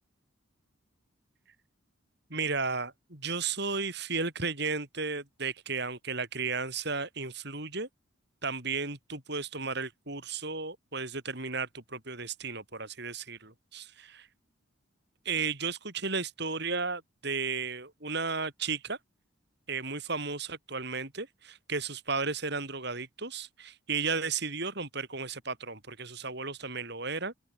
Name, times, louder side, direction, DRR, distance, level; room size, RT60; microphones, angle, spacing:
voice 1, 2.3-7.9 8.4-14.3 15.3-19.0 19.7-27.3, right 4 dB, 55° right, 5.6 m, -34 dB
open air
head